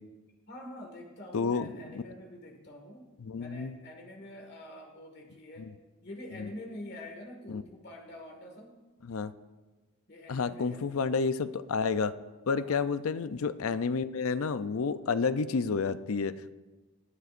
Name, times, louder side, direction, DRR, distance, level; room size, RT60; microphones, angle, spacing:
voice 1, 0.5-3.0 3.4-5.7 6.0-8.7 10.1-10.8 12.5-12.8, left 1 dB, 50° left, 1 dB, 1.9 m, -46 dB
voice 2, 1.3-2.0 3.2-3.8 5.6-5.7 6.4-6.5 7.5-7.6 9.0-9.3 10.3-12.1 12.5-16.5, left 5 dB, 75° left, 13 dB, 0.5 m, -30 dB
19.0 x 12.0 x 2.5 m, 1.2 s
head